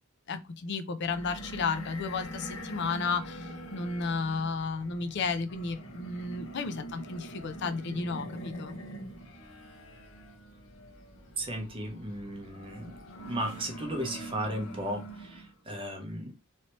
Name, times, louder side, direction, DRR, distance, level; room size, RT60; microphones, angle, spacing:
voice 1, 0.3-8.8, left 4 dB, 55° left, 0.5 m, -33 dB
sound 1, 1.0-15.6, right 1 dB, 80° left, 1.1 m, -44 dB
voice 2, 11.4-16.3, right 1 dB, 25° right, 0.7 m, -35 dB
3.2 x 2.8 x 2.9 m
head